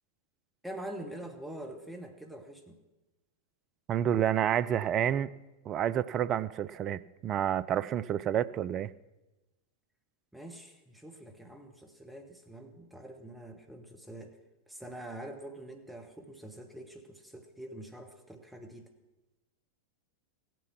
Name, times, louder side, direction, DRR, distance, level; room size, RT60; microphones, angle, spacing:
voice 1, 0.6-2.8 10.3-14.4 14.7-18.9, right 1 dB, 5° right, 5 dB, 1.2 m, -45 dB
voice 2, 3.9-5.3 5.7-8.9, right 10 dB, 30° right, 18 dB, 0.4 m, -29 dB
16.0 x 9.1 x 5.9 m, 1.1 s
figure-of-eight pair, 90°, 0 cm